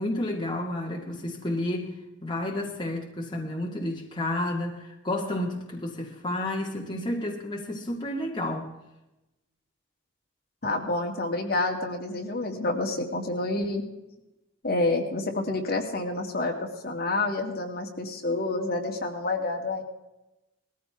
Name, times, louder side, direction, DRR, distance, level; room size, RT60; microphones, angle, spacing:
voice 1, 0.0-1.9 2.2-8.7, left 1 dB, 20° left, -2 dB, 2.0 m, -31 dB
voice 2, 10.6-13.8 14.6-16.5 16.8-19.8, left 2 dB, 50° left, 1 dB, 2.4 m, -28 dB
20.0 x 15.0 x 3.5 m, 0.96 s
head